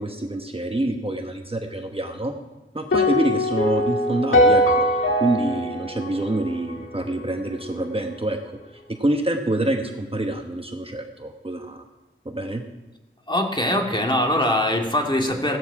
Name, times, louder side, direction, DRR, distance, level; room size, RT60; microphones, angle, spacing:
voice 1, 0.0-2.3 2.7-8.4 8.9-11.8 12.2-12.6, right 1 dB, 25° right, 4 dB, 1.3 m, -26 dB
sound 1, 2.9-7.2, equal, 70° left, 2.1 m, -21 dB
voice 2, 13.3-15.6, left 1 dB, 20° left, 2 dB, 2.2 m, -22 dB
16.0 x 13.5 x 4.9 m, 1.0 s
wide cardioid pair, 75°, 21 cm